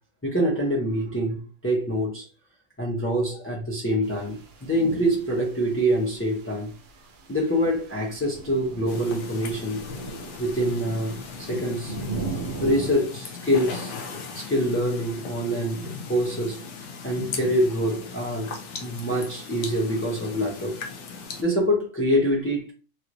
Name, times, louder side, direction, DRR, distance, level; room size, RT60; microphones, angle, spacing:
voice 1, 0.2-2.3 2.8-6.7 7.3-9.8 10.4-12.0 12.6-13.9 14.3-16.6 17.0-18.5 18.8-20.8 21.4-22.7, equal, 20° left, 0.3 m, -25 dB
sound 1, 4.0-12.9, right 3 dB, 55° right, 0.6 m, -39 dB
sound 2, 8.9-21.4, left 5 dB, 85° left, 1.1 m, -38 dB
3.1 x 2.9 x 2.5 m
omnidirectional pair, 1.4 m